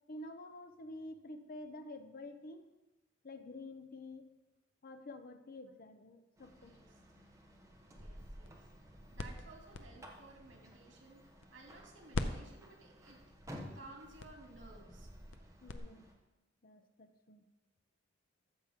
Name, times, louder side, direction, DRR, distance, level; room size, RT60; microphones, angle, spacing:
voice 1, 0.1-2.7 3.2-4.3 4.8-6.8 15.6-16.1 16.6-17.4, left 2 dB, 50° left, 8 dB, 0.7 m, -49 dB
sound 1, 6.4-16.1, equal, 15° right, 1.2 m, -54 dB
voice 2, 6.6-7.0 8.0-8.7 9.1-13.2 13.7-15.1, right 2 dB, 80° right, 0 dB, 2.7 m, -56 dB
sound 2, 8.2-11.8 12.1-15.8, left 2 dB, 85° left, 0.7 m, -45 dB
13.5 x 7.2 x 3.7 m, 1.1 s
head